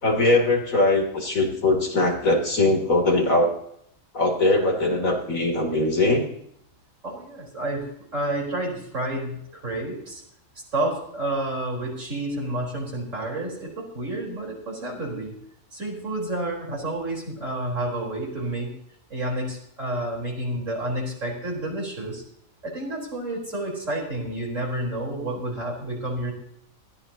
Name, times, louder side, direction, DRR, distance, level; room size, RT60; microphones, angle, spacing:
voice 1, 0.0-3.5 4.1-6.2, left 2 dB, 85° left, 1 dB, 3.6 m, -21 dB
voice 2, 7.0-10.2 10.5-15.3 15.7-18.7 19.1-22.2 22.6-26.3, right 1 dB, 65° right, -2 dB, 4.8 m, -30 dB
20.5 x 15.0 x 2.9 m, 0.70 s
omnidirectional pair, 1.4 m